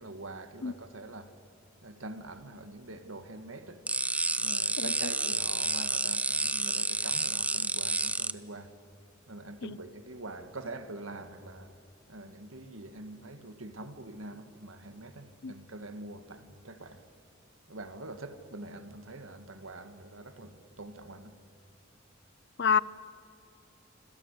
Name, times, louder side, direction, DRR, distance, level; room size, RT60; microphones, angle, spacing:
voice 1, 0.0-1.3 1.8-3.8 4.4-8.7 9.3-11.7 12.1-17.0 17.7-21.3, right 2 dB, 75° right, 1.9 m, -44 dB
voice 2, 0.6-0.7 4.8-4.9 9.6-9.8 15.4-15.5 22.6-22.8, left 6 dB, 55° left, 0.6 m, -27 dB
sound 1, 3.9-8.3, right 3 dB, 5° right, 0.6 m, -30 dB
26.5 x 26.5 x 8.3 m
head